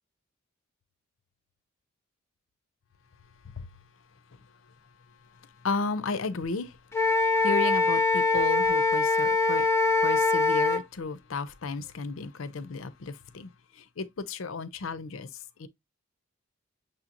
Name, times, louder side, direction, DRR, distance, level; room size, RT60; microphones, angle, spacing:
voice 1, 5.6-6.8 7.2-9.7 10.0-15.3 15.6-15.7, left 4 dB, 70° left, 0.6 m, -33 dB
Wind instrument woodwind instrument, 6.9-10.8, left 3 dB, 10° left, 0.5 m, -23 dB
6.6 x 2.9 x 2.5 m
head